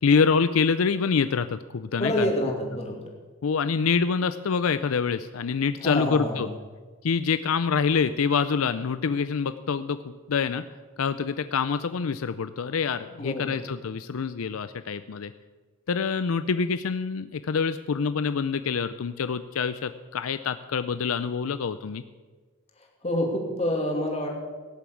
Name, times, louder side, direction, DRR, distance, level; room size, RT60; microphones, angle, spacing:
voice 1, 0.0-2.3 3.4-6.5 7.0-10.6 11.0-15.3 15.9-22.0, left 5 dB, 80° left, 12 dB, 0.5 m, -26 dB
voice 2, 2.0-3.1 5.8-6.5 13.2-13.7 22.8-24.3, left 1 dB, 30° left, 0 dB, 2.7 m, -28 dB
17.0 x 7.1 x 8.5 m, 1.4 s
head